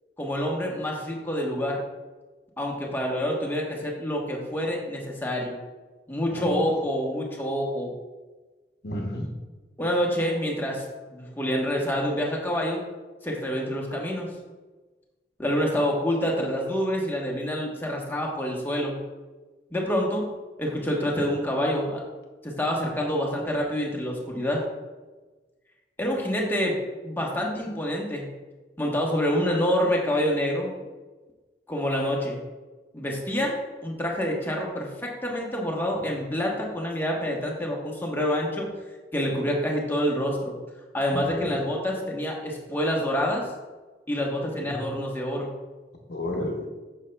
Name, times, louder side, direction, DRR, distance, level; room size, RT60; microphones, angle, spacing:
voice 1, 0.2-1.8 2.6-5.5 6.1-7.9 9.8-10.8 11.1-12.8 13.2-14.3 15.4-19.0 19.7-20.3 20.6-22.0 22.4-24.6 26.0-26.8 27.0-28.3 28.8-30.7 31.7-32.4 32.9-38.7 39.1-40.5 40.9-43.5 44.1-45.5, equal, 10° left, -1 dB, 1.1 m, -27 dB
voice 2, 8.8-9.4 41.1-41.6 44.5-44.8 46.1-46.7, left 1 dB, 65° left, 1 dB, 0.9 m, -32 dB
9.2 x 6.5 x 2.3 m, 1.3 s
head